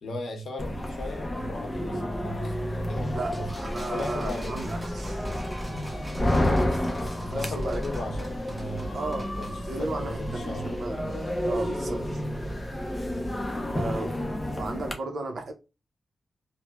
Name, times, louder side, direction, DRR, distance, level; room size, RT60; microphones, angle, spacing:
voice 1, 0.0-3.5 3.9-4.7 5.7-6.2 7.2-11.1, left 1 dB, 90° left, 0.8 m, -38 dB
sound 1, 0.6-14.9, left 1 dB, 15° left, 0.5 m, -30 dB
voice 2, 3.1-5.2 7.2-7.8 8.9-9.3 9.7-11.0 11.4-12.0 13.7-14.2 14.5-15.5, right 3 dB, 65° right, 0.6 m, -34 dB
sound 2, 3.2-13.1, right 1 dB, 20° right, 1.4 m, -52 dB
sound 3, 3.3-9.5, right 1 dB, ahead, 0.9 m, -45 dB
3.0 x 2.0 x 2.2 m
wide cardioid pair, 105°, 0 cm